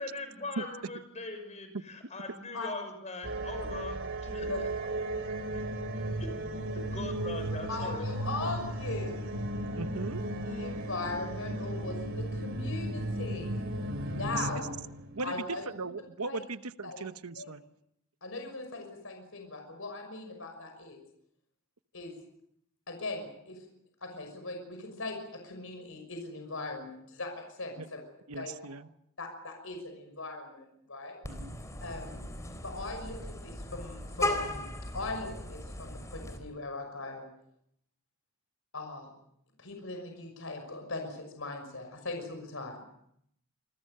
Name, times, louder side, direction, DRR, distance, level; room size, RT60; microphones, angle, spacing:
voice 1, 0.0-4.0 4.3-4.7 6.2-6.3 6.9-8.0 8.4-8.5, left 2 dB, 30° left, 7 dB, 6.0 m, -41 dB
sound 1, 3.2-15.4, right 1 dB, 60° right, 2.9 m, -35 dB
voice 2, 4.3-4.6 7.7-9.4 10.4-13.7 14.0-14.7 15.2-15.6 16.3-16.4 16.8-17.0 17.4-17.5 18.2-21.0 21.9-22.2 22.9-23.6 24.0-28.0 28.4-28.5 29.2-31.2 31.8-32.2 32.6-34.7 34.9-37.3 38.7-39.1 39.6-42.9, left 3 dB, 65° left, 4 dB, 6.0 m, -39 dB
voice 3, 9.8-10.2 14.3-14.5 15.1-15.3 15.7-17.6 28.3-28.9 31.3-31.6, right 3 dB, 85° right, 12 dB, 1.0 m, -38 dB
Vehicle horn car horn honking, 31.2-36.4, left 1 dB, 15° left, 3.6 m, -37 dB
28.0 x 22.0 x 6.7 m, 0.73 s
head